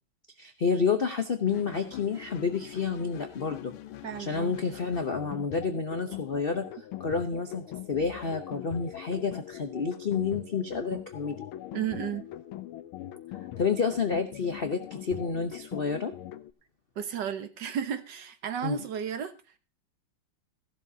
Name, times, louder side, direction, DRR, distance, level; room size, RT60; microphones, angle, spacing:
voice 1, 0.4-3.7 4.2-6.7 7.0-11.4 13.6-16.1 18.6-18.8, left 5 dB, 65° left, 0.5 m, -29 dB
sound 1, 1.4-16.5, left 12 dB, 85° left, 1.6 m, -42 dB
voice 2, 4.0-4.5 11.7-12.2 17.0-19.3, right 8 dB, 60° right, 1.5 m, -33 dB
15.5 x 11.5 x 2.7 m
omnidirectional pair, 2.3 m